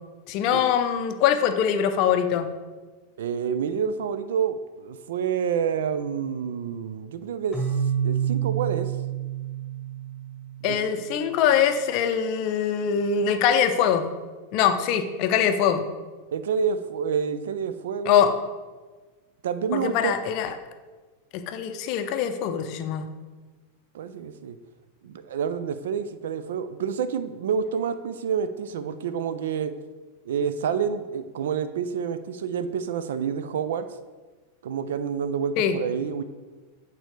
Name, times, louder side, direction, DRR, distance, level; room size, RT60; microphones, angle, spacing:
voice 1, 0.3-2.5 10.6-14.1 14.5-15.8 18.1-18.3 19.7-20.5 21.3-23.1 35.6-35.7, left 8 dB, 45° left, 8 dB, 0.5 m, -23 dB
voice 2, 3.2-7.6 8.0-8.9 10.6-10.8 16.3-18.3 19.4-20.1 23.9-24.6 25.0-29.7 30.3-33.8 34.6-36.2, right 7 dB, 60° right, 11 dB, 0.3 m, -28 dB
Keyboard (musical), 7.5-11.2, right 9 dB, 5° left, 1.5 m, -29 dB
8.7 x 4.0 x 3.3 m, 1.3 s
figure-of-eight pair, 90°, 0 cm